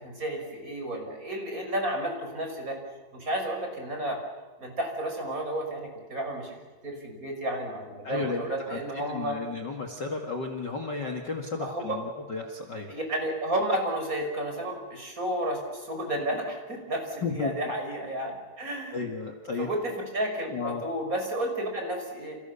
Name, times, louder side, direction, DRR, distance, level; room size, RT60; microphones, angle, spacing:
voice 1, 0.0-2.8 3.1-4.2 4.6-6.6 6.8-9.4 11.6-12.0 12.9-19.0 19.6-22.4, right 1 dB, 20° right, 2 dB, 5.9 m, -32 dB
voice 2, 8.0-12.9 17.2-17.5 18.9-19.7 20.5-20.8, left 4 dB, 50° left, 3 dB, 1.2 m, -33 dB
29.5 x 28.0 x 7.0 m, 1.3 s
omnidirectional pair, 5.2 m